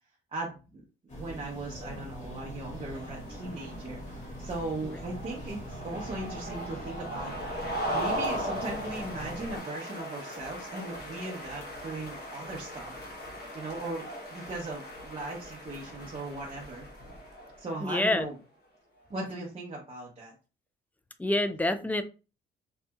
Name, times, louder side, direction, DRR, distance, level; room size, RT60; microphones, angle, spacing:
voice 1, 0.3-0.8 1.1-7.5 7.9-12.9 13.5-16.9 17.6-18.4 19.1-20.3, right 2 dB, 30° right, -4 dB, 0.7 m, -38 dB
sound 1, 1.1-9.6, equal, 35° left, 1.5 m, -43 dB
sound 2, 2.3-17.9, equal, 55° left, 1.1 m, -39 dB
voice 2, 17.8-18.3 21.2-22.0, left 1 dB, 10° left, 10 dB, 0.3 m, -27 dB
2.7 x 2.6 x 2.3 m, 0.32 s
cardioid pair, 90°, 20 cm